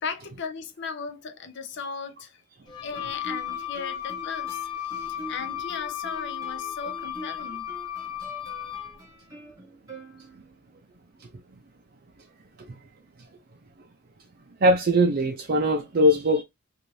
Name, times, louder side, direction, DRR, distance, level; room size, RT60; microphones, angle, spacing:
voice 1, 0.0-2.4 2.8-7.7, left 5 dB, 60° left, 0.5 m, -37 dB
Wind instrument woodwind instrument, 2.7-9.0, left 11 dB, 20° left, 0.7 m, -35 dB
Guitar, 2.9-10.7, right 2 dB, 15° right, 1.0 m, -45 dB
voice 2, 14.6-16.4, equal, 45° right, 0.4 m, -20 dB
2.6 x 2.4 x 3.1 m
head